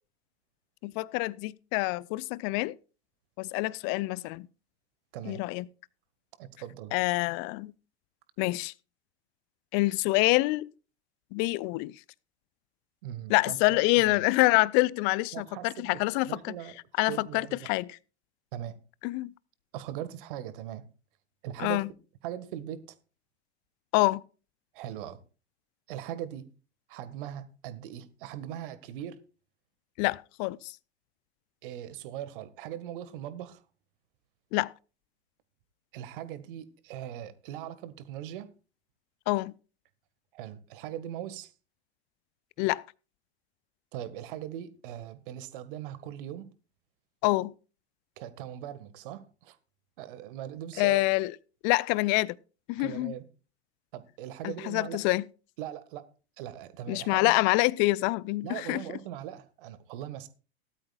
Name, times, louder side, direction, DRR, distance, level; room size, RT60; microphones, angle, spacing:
voice 1, 0.8-2.8 3.4-4.5 5.3-5.7 6.9-7.7 8.4-8.7 9.7-10.7 11.3-11.9 13.3-16.5 17.0-18.0 19.0-19.3 21.6-21.9 23.9-24.2 30.0-30.7 34.5-34.7 39.3-39.5 42.6-42.8 47.2-47.5 50.8-51.3 51.6-52.4 52.7-53.1 54.4-55.2 56.9-58.8, left 22 dB, 35° left, 0.5 m, -26 dB
voice 2, 6.4-6.9 13.0-14.2 15.3-16.7 17.1-17.7 18.5-18.8 19.7-20.9 21.4-21.9 22.2-23.0 24.7-25.2 25.9-26.5 26.9-29.2 31.6-33.6 35.9-38.5 40.3-41.5 43.9-46.5 48.2-49.6 50.0-51.0 52.8-53.3 53.9-55.0 55.6-56.1 56.4-57.3 58.4-60.3, right 11 dB, 50° right, 1.7 m, -40 dB
17.5 x 12.5 x 2.4 m
figure-of-eight pair, 90°, 33 cm